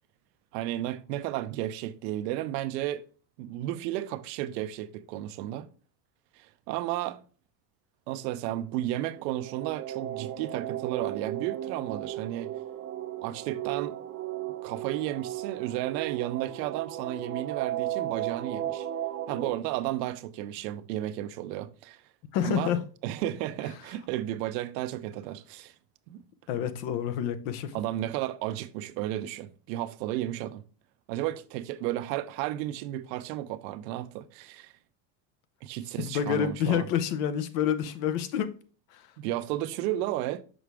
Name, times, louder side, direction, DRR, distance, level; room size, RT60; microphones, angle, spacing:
voice 1, 0.5-3.0 3.4-5.7 6.4-7.2 8.1-12.5 13.2-14.0 14.6-18.9 19.3-22.0 22.4-22.7 23.0-25.7 26.1-26.2 27.7-30.6 31.1-34.7 35.6-36.9 39.2-40.4, right 14 dB, 90° right, 0.7 m, -33 dB
sound 1, 8.8-19.5, right 12 dB, 30° right, 0.7 m, -35 dB
voice 2, 22.3-22.8 26.5-27.7 36.0-38.5 38.9-39.1, left 9 dB, 70° left, 0.9 m, -28 dB
6.3 x 4.8 x 3.4 m
supercardioid pair, 135°, 49 cm